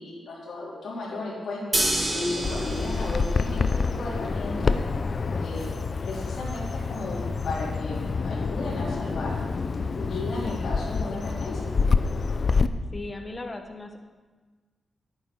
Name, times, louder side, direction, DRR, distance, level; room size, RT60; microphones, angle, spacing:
voice 1, 0.0-4.8 5.4-9.4 9.8-11.7, left 2 dB, 75° left, -7 dB, 3.7 m, -34 dB
sound 1, 1.7-7.8, right 1 dB, 15° right, 2.1 m, -32 dB
Bird vocalization bird call bird song, 2.4-12.7, left 4 dB, 50° left, 0.5 m, -27 dB
voice 2, 12.9-14.0, left 2 dB, 30° left, 5 dB, 1.4 m, -37 dB
10.5 x 9.3 x 5.6 m, 1.3 s
cardioid pair, 85°, 0 cm